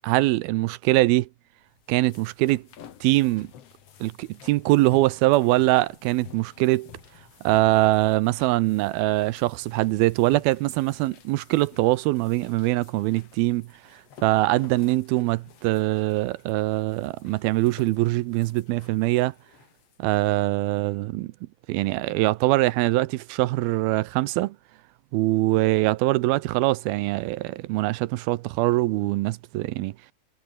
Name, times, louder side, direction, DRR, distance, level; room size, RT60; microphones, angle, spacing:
voice 1, 0.0-1.3 1.9-2.6 3.0-3.5 4.0-6.9 7.4-13.7 14.2-19.3 20.0-21.3 21.7-24.6 25.1-29.9, right 18 dB, 85° right, 2.5 m, -23 dB
sound 1, 1.6-20.0, left 9 dB, 50° left, 2.3 m, -51 dB
omnidirectional pair, 4.5 m